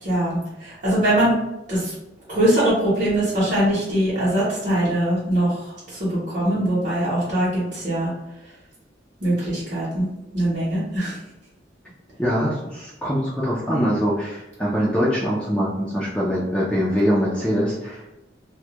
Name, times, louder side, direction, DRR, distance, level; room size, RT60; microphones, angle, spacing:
voice 1, 0.0-1.3 1.7-1.9 2.3-5.5 5.9-8.1 9.2-10.1 10.3-11.1, right 1 dB, 45° right, -10 dB, 0.8 m, -22 dB
voice 2, 12.2-18.1, equal, 5° left, -7 dB, 0.3 m, -23 dB
2.2 x 2.1 x 2.8 m, 0.96 s
head